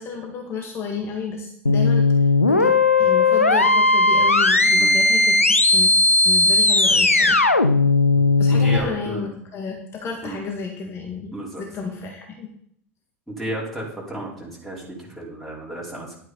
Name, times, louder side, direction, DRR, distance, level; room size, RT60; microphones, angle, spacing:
voice 1, 0.0-5.4 5.7-7.4 8.4-11.3 11.6-12.5, left 5 dB, 35° left, 2 dB, 1.8 m, -32 dB
sound 1, 1.7-8.8, left 3 dB, 85° left, 0.6 m, -17 dB
voice 2, 8.6-9.2 10.2-10.4 11.3-11.6 13.3-16.2, right 1 dB, ahead, -4 dB, 3.7 m, -33 dB
11.0 x 8.9 x 4.0 m, 0.67 s
figure-of-eight pair, 75°, 7 cm